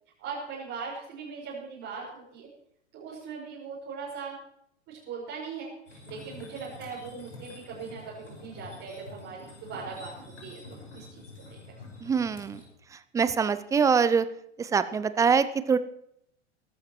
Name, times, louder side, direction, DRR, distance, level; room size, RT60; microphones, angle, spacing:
voice 1, 0.2-2.5 2.9-4.4 4.9-10.1 10.4-11.6, right 5 dB, 35° right, -6 dB, 5.5 m, -40 dB
sound 1, 5.9-12.6, left 2 dB, 75° left, 5.7 m, -47 dB
voice 2, 12.0-12.6 13.1-14.3 14.6-15.8, right 6 dB, 10° right, 13 dB, 0.5 m, -24 dB
22.5 x 12.0 x 3.1 m, 0.74 s
figure-of-eight pair, 95°, 35 cm